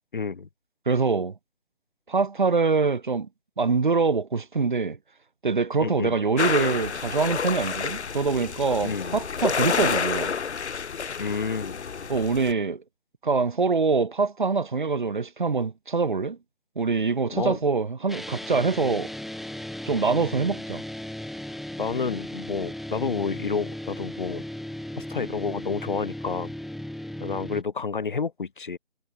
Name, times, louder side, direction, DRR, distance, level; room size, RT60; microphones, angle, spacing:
voice 1, 0.1-0.5 5.8-6.1 8.8-9.2 11.2-11.8 17.3-17.6 21.8-24.4 25.0-26.5 27.2-28.8, left 5 dB, 45° left, 1.2 m, -30 dB
voice 2, 0.9-1.3 2.1-3.3 3.6-5.0 5.4-10.3 12.1-12.8 13.2-16.4 16.8-19.1 19.9-20.8, right 4 dB, 45° right, 0.8 m, -24 dB
sound 1, 6.4-12.5, left 6 dB, 65° left, 0.7 m, -29 dB
sound 2, 18.1-27.6, left 1 dB, ahead, 0.4 m, -36 dB
figure-of-eight pair, 160°, 36 cm